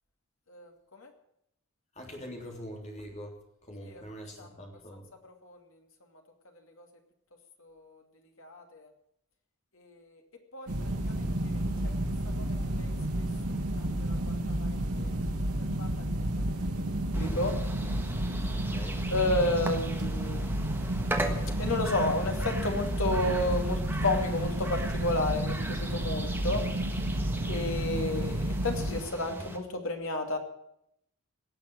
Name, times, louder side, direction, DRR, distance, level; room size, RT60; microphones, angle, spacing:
voice 1, 0.5-1.1 3.8-4.0 4.4-4.5 5.4-5.6 6.8-6.9 7.6-8.0 8.4-8.9 9.8-10.2 10.5-10.7 11.0-11.9 12.4-12.9 13.2-13.3 13.8-14.3 14.6-15.1 15.8-16.0 17.0-17.5 19.1-20.4 21.6-26.6 27.4-30.4, left 2 dB, 65° left, 3 dB, 2.5 m, -32 dB
voice 2, 1.9-5.1 18.5-19.0, equal, 30° left, 1 dB, 3.3 m, -44 dB
sound 1, 10.7-29.0, right 1 dB, 90° right, 2.0 m, -31 dB
sound 2, 17.1-29.6, right 1 dB, 10° right, 1.4 m, -39 dB
18.0 x 6.9 x 9.6 m, 0.78 s
head